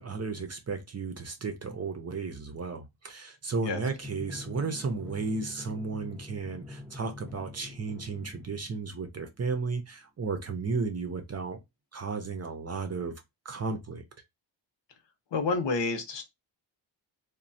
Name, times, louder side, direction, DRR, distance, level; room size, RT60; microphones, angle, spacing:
voice 1, 0.0-11.6 11.9-14.0, right 4 dB, 35° right, 0.6 m, -34 dB
Drum, 4.0-9.1, left 2 dB, ahead, 0.7 m, -45 dB
voice 2, 15.3-16.2, left 3 dB, 65° left, 0.9 m, -29 dB
3.1 x 2.2 x 2.6 m
wide cardioid pair, 105°, 47 cm